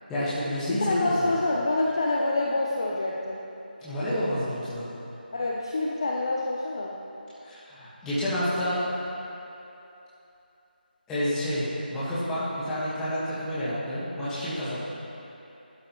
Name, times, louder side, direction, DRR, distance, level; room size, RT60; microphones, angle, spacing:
voice 1, 0.1-1.3 3.8-4.9 7.4-8.8 11.1-11.6 11.9-14.7, equal, 5° left, -12 dB, 1.4 m, -29 dB
voice 2, 0.8-3.4 5.3-6.9, left 2 dB, 30° left, -2 dB, 0.6 m, -26 dB
19.0 x 11.5 x 3.0 m, 2.9 s
figure-of-eight pair, 175°, 5 cm